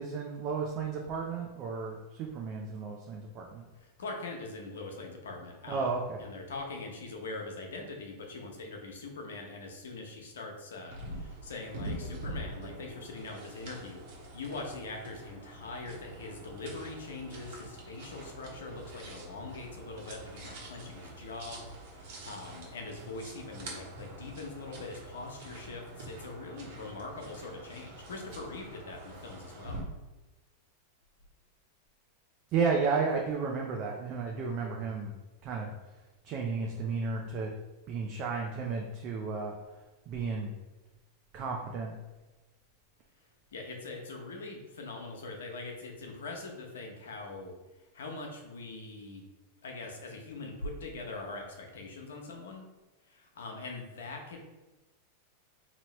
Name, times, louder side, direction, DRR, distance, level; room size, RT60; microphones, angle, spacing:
voice 1, 0.0-3.6 5.7-6.2 32.5-35.1 35.4-35.7 36.2-37.5 37.9-39.6 40.1-40.5 41.3-41.9, right 4 dB, 45° right, 0 dB, 0.6 m, -33 dB
voice 2, 3.8-21.6 21.9-29.8 43.5-49.3 49.6-52.7 53.1-54.4, left 3 dB, 85° left, 2 dB, 0.8 m, -42 dB
sound 1, 10.9-29.8, right 1 dB, 60° right, 1.3 m, -45 dB
3.0 x 2.8 x 4.2 m, 1.1 s
hypercardioid pair, 110°, 0 cm